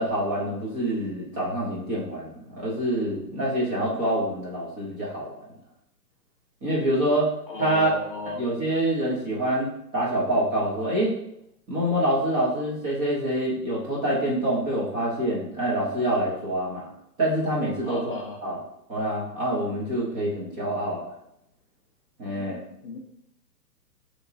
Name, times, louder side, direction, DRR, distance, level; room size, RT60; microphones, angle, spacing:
voice 1, 0.0-5.5 6.6-7.3 7.6-7.9 8.3-11.1 11.7-16.8 17.2-18.1 18.4-18.6 18.9-21.1 22.2-22.6, right 1 dB, 10° right, -5 dB, 0.6 m, -26 dB
voice 2, 7.5-8.5 17.9-18.4 22.2-23.0, left 3 dB, 35° left, -1 dB, 0.5 m, -36 dB
6.5 x 3.1 x 2.6 m, 0.77 s
hypercardioid pair, 135°, 49 cm